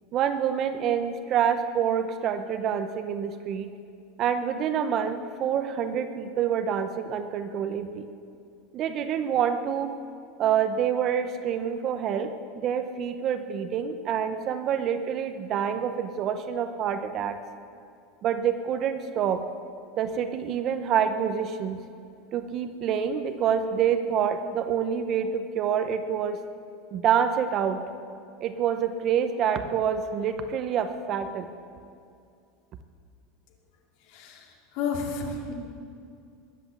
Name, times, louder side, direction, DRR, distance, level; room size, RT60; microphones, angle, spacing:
voice 1, 0.1-3.7 4.2-8.1 8.7-9.9 10.4-17.4 18.2-19.4 20.0-21.8 22.3-26.4 26.9-27.8 28.4-31.5, right 8 dB, 30° right, 9 dB, 0.7 m, -27 dB
voice 2, 34.8-35.6, left 5 dB, 50° left, 2 dB, 2.4 m, -29 dB
20.5 x 8.1 x 8.3 m, 2.4 s
supercardioid pair, 180°, 0 cm